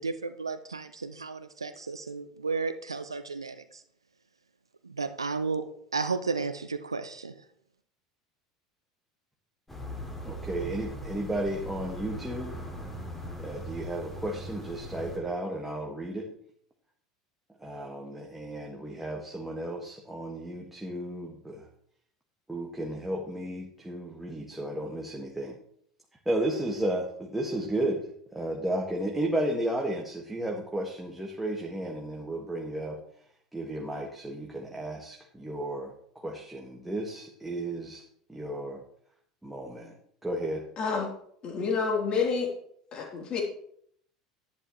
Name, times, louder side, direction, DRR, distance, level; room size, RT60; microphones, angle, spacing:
voice 1, 0.0-3.6 4.8-7.3, right 4 dB, 85° right, 11 dB, 0.5 m, -33 dB
sound 1, 9.7-15.2, right 1 dB, 10° left, 2.6 m, -40 dB
voice 2, 10.2-12.6 13.4-16.3 17.6-21.7 22.5-25.6 26.2-33.0 33.5-38.8 39.4-40.0 40.2-40.6, right 1 dB, 5° right, 0 dB, 1.7 m, -33 dB
voice 3, 40.8-41.1 41.4-42.5 42.9-43.4, left 5 dB, 40° left, 0 dB, 3.2 m, -28 dB
11.0 x 11.0 x 3.1 m, 0.66 s
figure-of-eight pair, 75°, 2 cm